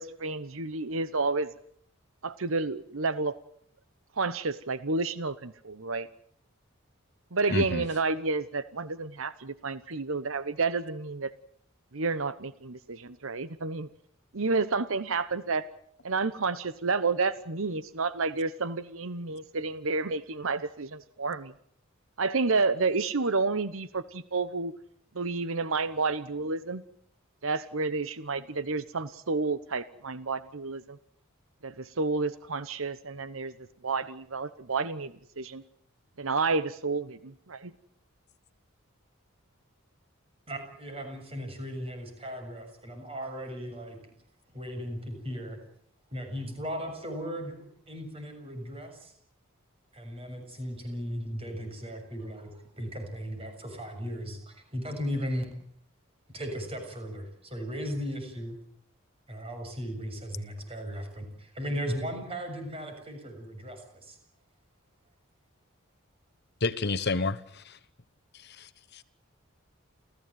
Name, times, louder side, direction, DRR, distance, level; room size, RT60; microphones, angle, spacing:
voice 1, 0.0-1.5 2.2-3.4 4.2-6.1 7.3-11.3 11.9-13.9 14.3-15.6 16.0-21.5 22.2-24.7 25.1-26.8 27.4-31.0 31.6-33.5 33.8-35.6 36.2-37.7, right 3 dB, 75° right, 15 dB, 1.0 m, -30 dB
voice 2, 7.5-7.8 66.6-67.8 68.4-69.0, left 3 dB, 50° left, 12 dB, 1.2 m, -30 dB
voice 3, 40.5-44.1 44.5-45.6 46.1-49.1 49.9-55.5 56.3-58.6 59.3-64.2, equal, 30° right, 5 dB, 7.0 m, -37 dB
29.5 x 15.5 x 9.3 m, 0.65 s
head